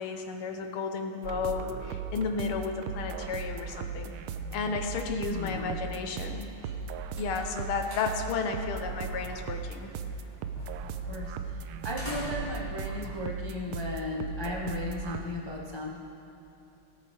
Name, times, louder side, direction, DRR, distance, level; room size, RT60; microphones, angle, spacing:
voice 1, 0.0-4.1 4.5-6.5 7.2-9.9, left 4 dB, 85° left, 5 dB, 1.8 m, -33 dB
sound 1, 1.2-15.2, right 5 dB, 85° right, 1.5 m, -37 dB
voice 2, 5.3-5.8 6.4-6.8 7.1-7.2 11.1-11.3 11.8-15.9, left 2 dB, 30° left, -2 dB, 0.5 m, -36 dB
sound 2, 6.8-14.1, right 1 dB, 10° right, 3.0 m, -46 dB
19.0 x 8.5 x 3.5 m, 3.0 s
omnidirectional pair, 2.3 m